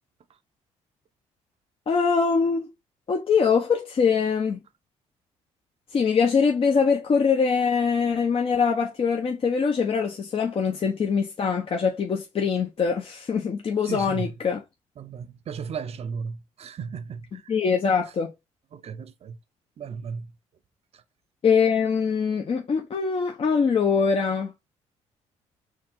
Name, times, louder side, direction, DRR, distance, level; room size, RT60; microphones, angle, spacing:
voice 1, 1.9-2.7 3.1-4.6 5.9-14.6 17.5-18.3 21.4-24.5, left 5 dB, 45° left, 0.9 m, -23 dB
voice 2, 13.8-14.3 15.0-17.5 18.7-19.4 19.8-20.3 20.9-21.0, right 6 dB, 50° right, 0.7 m, -35 dB
4.7 x 2.7 x 3.8 m
supercardioid pair, 75°, 13 cm